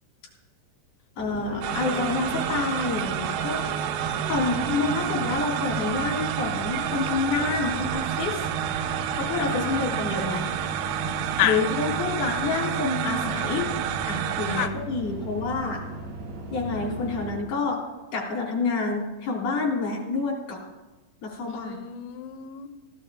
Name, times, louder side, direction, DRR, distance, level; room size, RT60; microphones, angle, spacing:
voice 1, 1.2-3.6 4.3-8.4 9.2-10.5 11.4-13.6 14.1-15.8 16.5-17.8 18.1-20.6 21.2-21.8, left 4 dB, 35° left, -3 dB, 3.8 m, -28 dB
sound 1, 1.2-17.4, right 1 dB, 50° right, 2.2 m, -38 dB
sound 2, 1.6-14.7, right 10 dB, 80° right, 2.9 m, -29 dB
voice 2, 4.4-4.9 9.4-9.8 11.4-11.6 14.5-14.8 21.5-22.7, left 12 dB, 75° left, 7 dB, 2.8 m, -30 dB
18.0 x 12.0 x 3.6 m, 1.1 s
omnidirectional pair, 5.7 m